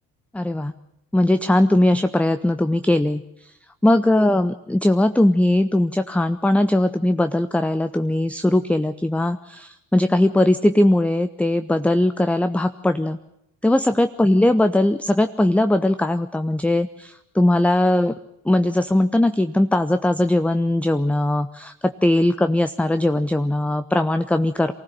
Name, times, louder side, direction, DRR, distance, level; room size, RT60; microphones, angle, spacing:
voice 1, 0.3-0.7 1.1-3.2 3.8-13.2 13.6-18.1 18.4-24.7, left 1 dB, 5° left, 11 dB, 0.7 m, -19 dB
24.0 x 16.0 x 7.4 m, 0.85 s
hypercardioid pair, 55°, 42 cm